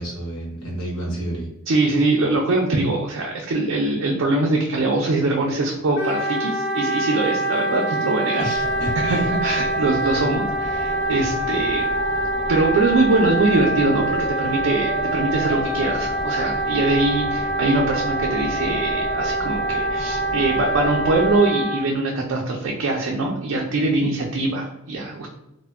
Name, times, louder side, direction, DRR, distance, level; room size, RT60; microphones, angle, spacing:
voice 1, 0.0-1.5 8.4-9.3, right 1 dB, 85° left, -2 dB, 0.9 m, -30 dB
voice 2, 1.7-8.4 9.0-11.9 12.5-25.3, right 2 dB, 65° right, -1 dB, 0.4 m, -22 dB
Wind instrument woodwind instrument, 5.9-21.8, right 1 dB, 55° left, 0.4 m, -25 dB
sound 1, 8.5-21.4, left 1 dB, 35° left, 1.0 m, -33 dB
2.1 x 2.1 x 3.3 m, 0.89 s
head